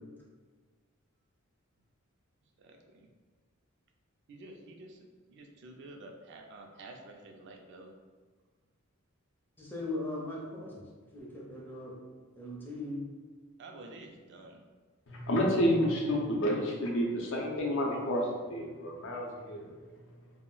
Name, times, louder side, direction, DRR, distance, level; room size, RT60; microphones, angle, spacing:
voice 1, 2.6-3.1 4.3-7.9 13.6-14.6, right 2 dB, 55° right, 3 dB, 0.3 m, -50 dB
voice 2, 9.6-10.8 11.1-12.0 12.3-13.0, left 2 dB, 10° left, -4 dB, 0.5 m, -39 dB
voice 3, 15.1-19.7, equal, 60° left, -1 dB, 0.5 m, -30 dB
2.2 x 2.0 x 3.7 m, 1.4 s
head